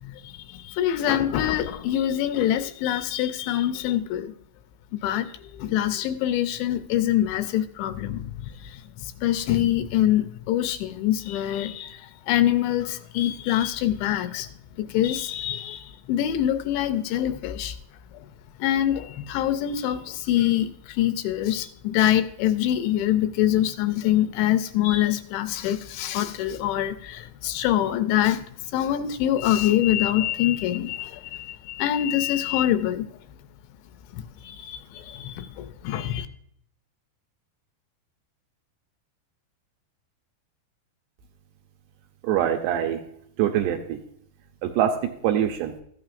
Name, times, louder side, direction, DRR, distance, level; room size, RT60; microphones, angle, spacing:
voice 1, 0.0-4.3 4.9-5.3 5.5-14.5 14.8-17.8 18.6-33.1 34.1-36.3, left 12 dB, 80° left, 10 dB, 2.8 m, -25 dB
voice 2, 42.2-43.0 43.4-44.0 44.6-45.7, right 10 dB, 80° right, 4 dB, 2.5 m, -24 dB
14.0 x 8.8 x 2.5 m, 0.68 s
omnidirectional pair, 5.2 m